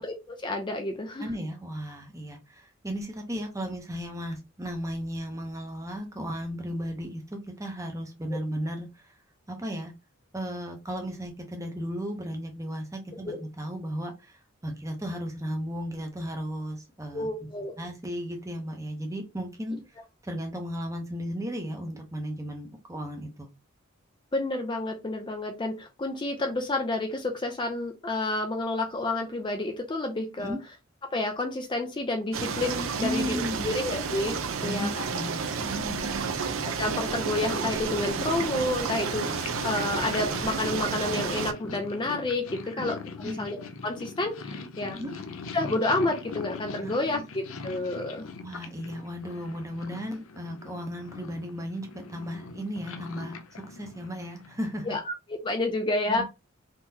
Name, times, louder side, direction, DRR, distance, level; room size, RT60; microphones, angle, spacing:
voice 1, 0.0-1.3 8.3-8.4 13.3-13.4 17.1-17.8 24.3-30.5 31.1-34.9 36.6-45.0 45.5-48.2 54.9-56.2, left 2 dB, 25° left, 4 dB, 0.4 m, -30 dB
voice 2, 1.2-9.1 9.5-9.9 10.3-17.3 17.8-19.8 20.2-23.5 30.4-30.6 33.0-33.7 34.6-36.4 42.7-42.8 43.2-43.5 44.9-45.1 46.8-47.3 48.4-54.9 56.1-56.2, equal, 15° right, 4 dB, 0.7 m, -35 dB
sound 1, 32.3-41.5, right 5 dB, 75° right, 0.5 m, -31 dB
Purr, 37.2-54.9, left 4 dB, 75° left, 0.5 m, -42 dB
3.7 x 2.9 x 2.7 m, 0.26 s
head